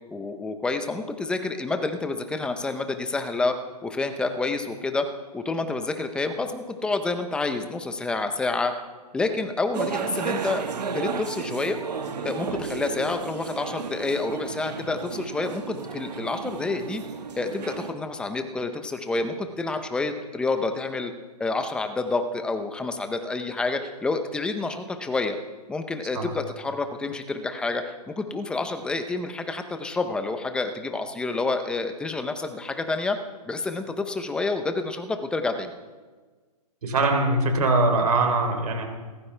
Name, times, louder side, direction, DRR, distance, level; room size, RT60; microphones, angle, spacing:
voice 1, 0.1-3.6 3.8-5.1 5.3-8.7 9.1-11.8 12.2-17.0 17.4-21.1 21.4-25.4 25.7-33.2 33.5-35.7, left 3 dB, 5° left, 7 dB, 0.6 m, -28 dB
sound 1, 9.7-17.9, right 5 dB, 85° right, 1.7 m, -33 dB
voice 2, 36.8-38.9, right 2 dB, 65° right, 3 dB, 3.4 m, -22 dB
28.0 x 14.5 x 3.3 m, 1.4 s
hypercardioid pair, 160°, 21 cm